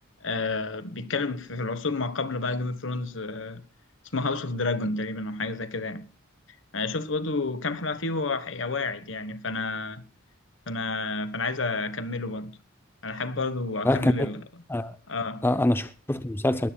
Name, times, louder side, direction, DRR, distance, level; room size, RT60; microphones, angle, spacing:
voice 1, 0.2-3.6 4.1-6.1 6.7-10.0 10.7-12.5 13.0-14.4 15.1-15.4, left 3 dB, 60° left, 1.3 m, -30 dB
voice 2, 13.8-14.3 14.7-15.0 15.4-16.7, left 1 dB, 10° left, 0.6 m, -25 dB
21.5 x 15.0 x 2.3 m
head